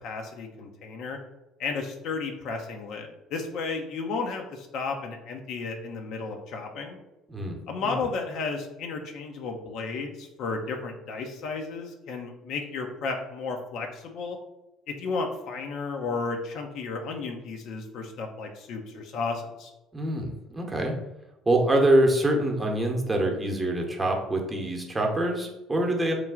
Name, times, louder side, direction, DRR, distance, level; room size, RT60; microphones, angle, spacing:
voice 1, 0.0-1.2 1.6-7.0 7.7-14.4 14.9-19.7, left 4 dB, 55° left, 3 dB, 0.5 m, -33 dB
voice 2, 7.3-7.9 19.9-20.9 21.5-26.1, right 1 dB, 20° right, 1 dB, 0.8 m, -25 dB
3.1 x 2.3 x 3.6 m, 0.96 s
figure-of-eight pair, 55°, 0 cm